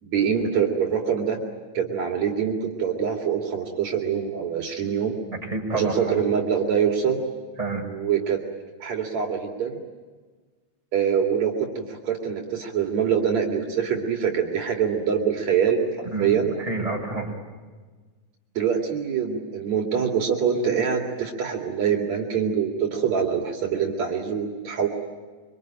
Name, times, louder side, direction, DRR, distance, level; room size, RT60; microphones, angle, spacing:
voice 1, 0.0-1.4 1.7-5.1 5.7-7.2 7.8-8.4 8.8-9.8 10.9-16.5 18.6-24.9, right 7 dB, 70° right, 1 dB, 3.6 m, -24 dB
voice 2, 5.3-6.2 7.6-7.8 16.1-17.3, right 3 dB, 10° right, -1 dB, 5.6 m, -29 dB
25.5 x 25.0 x 8.9 m, 1.4 s
omnidirectional pair, 3.3 m